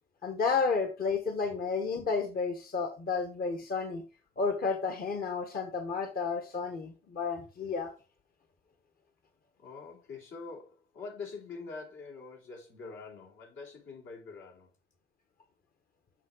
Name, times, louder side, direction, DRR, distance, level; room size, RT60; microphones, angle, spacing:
voice 1, 0.2-4.0 4.4-7.9, left 5 dB, 50° left, 1.1 m, -31 dB
voice 2, 9.6-14.7, left 4 dB, 75° left, 3.1 m, -45 dB
7.4 x 6.0 x 3.8 m
cardioid pair, 90°, 20 cm